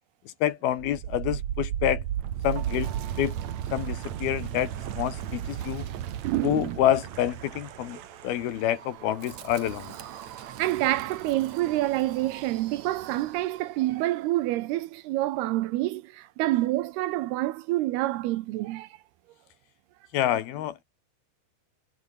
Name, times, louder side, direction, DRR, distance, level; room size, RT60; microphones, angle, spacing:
voice 1, 0.4-2.0 2.4-3.4 3.7-5.9 6.4-9.9 20.1-20.8, left 11 dB, 70° left, 3.1 m, -27 dB
Wind, 0.7-13.7, right 10 dB, 55° right, 2.1 m, -36 dB
voice 2, 6.2-6.8 10.4-18.9, right 16 dB, 75° right, 2.7 m, -27 dB
omnidirectional pair, 4.9 m